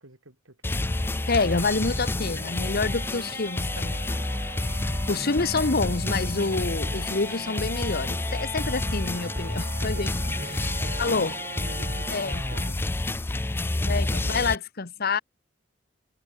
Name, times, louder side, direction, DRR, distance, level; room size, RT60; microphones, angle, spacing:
voice 1, 0.0-1.1 2.1-2.7 9.6-12.2 12.5-13.0 13.4-13.7 14.0-14.4, right 2 dB, 85° right, 5.0 m, -47 dB
sound 1, 0.6-14.6, left 2 dB, 10° left, 0.3 m, -29 dB
Wind instrument woodwind instrument, 0.7-12.7, right 6 dB, 45° right, 0.7 m, -44 dB
sound 2, 1.2-1.8 2.6-2.9 4.1-4.8 6.1-6.6 7.1-7.2 7.5-7.8 8.1-8.8 9.1-10.9 11.2-11.4, right 2 dB, 10° right, 2.7 m, -54 dB
voice 2, 1.3-4.1 5.1-10.1 11.0-11.3 12.1-12.4 13.9-15.2, left 3 dB, 50° left, 1.1 m, -27 dB
head